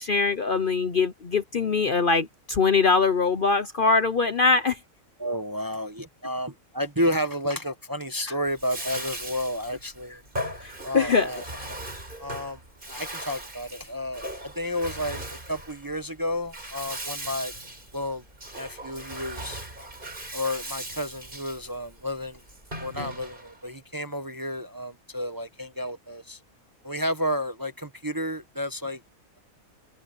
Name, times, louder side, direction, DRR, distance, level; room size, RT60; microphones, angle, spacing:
voice 1, 0.0-4.8 10.6-11.3, left 4 dB, 45° left, 0.9 m, -22 dB
voice 2, 5.2-10.2 10.8-11.4 12.2-12.6 12.9-17.5 17.9-18.2 18.6-19.6 20.3-22.4 22.8-26.4 26.8-29.0, equal, 15° right, 0.9 m, -31 dB
Bathtub (filling or washing), 8.5-23.6, right 1 dB, 35° right, 4.8 m, -38 dB
omnidirectional pair, 1.5 m